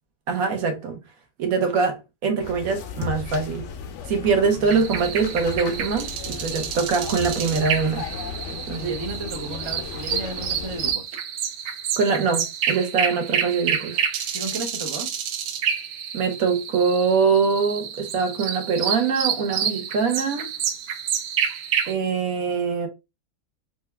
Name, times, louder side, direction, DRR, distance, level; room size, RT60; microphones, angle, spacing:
voice 1, 0.3-1.0 1.4-3.7 4.1-8.0 8.7-8.9 12.0-14.0 16.1-20.5 21.9-22.9, right 5 dB, 70° right, 1.2 m, -23 dB
sound 1, 2.4-10.9, left 6 dB, 65° left, 0.8 m, -35 dB
sound 2, 4.7-21.9, right 8 dB, 90° right, 1.1 m, -29 dB
voice 2, 8.7-11.1 14.3-15.1, right 2 dB, 50° right, 0.3 m, -34 dB
3.3 x 2.2 x 3.2 m
omnidirectional pair, 1.5 m